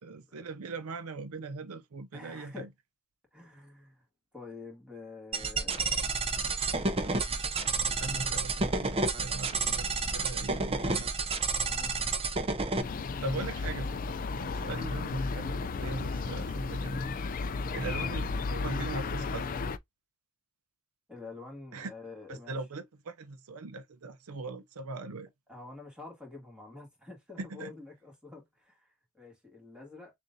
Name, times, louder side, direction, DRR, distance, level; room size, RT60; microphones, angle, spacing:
voice 1, 0.0-2.7 7.6-11.1 13.2-17.0 17.7-19.5 21.7-21.9 22.3-25.3 27.4-27.7, right 3 dB, 75° right, 0.6 m, -40 dB
voice 2, 2.1-2.7 3.3-4.0 4.3-6.1 11.6-12.0 17.6-17.9 21.1-22.6 25.5-30.1, left 3 dB, 5° right, 1.8 m, -48 dB
sound 1, 5.3-12.8, right 4 dB, 25° right, 0.7 m, -30 dB
sound 2, 12.8-19.8, left 4 dB, 40° left, 0.4 m, -33 dB
6.6 x 2.5 x 2.6 m
head